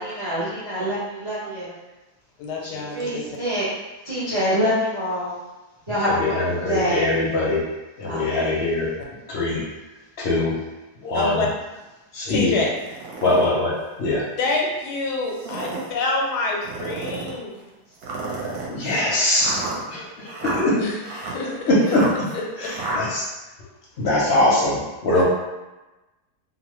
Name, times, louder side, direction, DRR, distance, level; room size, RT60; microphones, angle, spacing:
voice 1, 0.0-1.7 2.6-3.6 4.0-5.3 5.9-6.3 6.7-7.0 8.0-8.5, equal, 40° right, -10 dB, 0.4 m, -25 dB
voice 2, 2.4-3.2 11.1-11.5 12.3-12.7 14.4-17.6 20.8-22.0 22.3-22.7 25.2-25.3, left 3 dB, 90° left, -1 dB, 1.2 m, -27 dB
voice 3, 6.0-7.6 8.0-8.9 9.3-9.6 10.2-10.6 11.0-11.4 12.1-12.6 13.2-14.2 18.3-19.5 19.9-20.8 21.7-22.0 22.6-23.2 24.0-25.2, left 1 dB, 60° left, -5 dB, 0.7 m, -22 dB
sound 1, 12.8-13.5 14.1-14.2 15.2-15.9 16.6-17.4 18.0-23.0, right 2 dB, 70° right, 1.1 m, -32 dB
2.7 x 2.0 x 3.0 m, 1.1 s
omnidirectional pair, 1.7 m